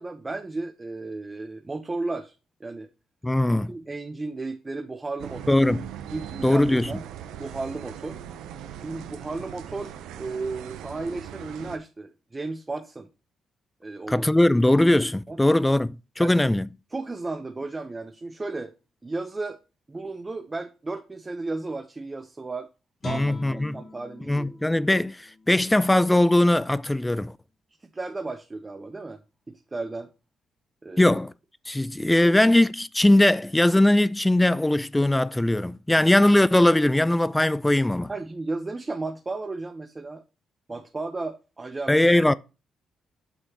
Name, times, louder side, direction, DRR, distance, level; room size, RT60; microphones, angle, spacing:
voice 1, 0.0-2.3 2.6-2.9 3.7-5.6 6.1-7.0 7.3-8.2 8.8-13.1 13.8-14.5 15.3-15.4 16.2-16.3 16.9-18.7 19.0-19.6 19.9-22.7 23.0-24.6 27.9-29.2 29.5-30.1 30.8-31.1 32.2-32.3 35.9-36.0 38.1-40.2 40.7-42.3, right 3 dB, 20° right, 0.7 m, -34 dB
voice 2, 3.2-3.7 5.5-5.8 6.4-6.9 14.1-16.7 23.0-23.8 24.3-27.3 31.0-31.3 31.7-38.1 41.9-42.3, left 1 dB, 10° left, 0.3 m, -20 dB
sound 1, 5.2-11.8, right 10 dB, 90° right, 0.7 m, -39 dB
Guitar, 23.0-26.2 26.6-26.7, left 3 dB, 40° left, 1.7 m, -43 dB
8.0 x 6.3 x 2.9 m
cardioid pair, 90°, 0 cm